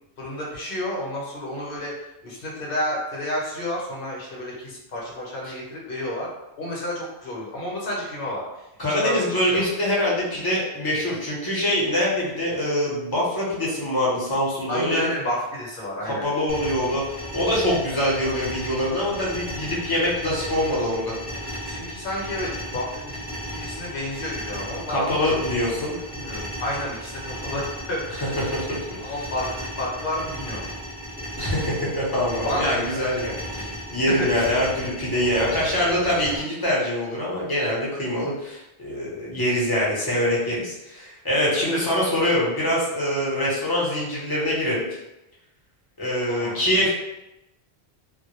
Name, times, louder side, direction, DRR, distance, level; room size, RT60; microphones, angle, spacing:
voice 1, 0.2-1.9 2.2-6.3 6.6-9.6 14.7-16.3 21.6-23.2 23.5-25.5 26.1-28.2 29.0-30.7 32.4-33.8 34.1-34.4 41.7-41.8 46.3-46.9, left 1 dB, 60° left, -4 dB, 0.8 m, -31 dB
voice 2, 8.8-15.1 16.0-21.1 21.4-21.6 24.9-26.0 28.5-29.1 31.4-44.8 46.0-46.9, left 1 dB, 25° left, -6 dB, 0.6 m, -24 dB
sound 1, 16.5-36.4, equal, 10° right, 0.7 m, -35 dB
2.1 x 2.0 x 2.9 m, 0.92 s
omnidirectional pair, 1.1 m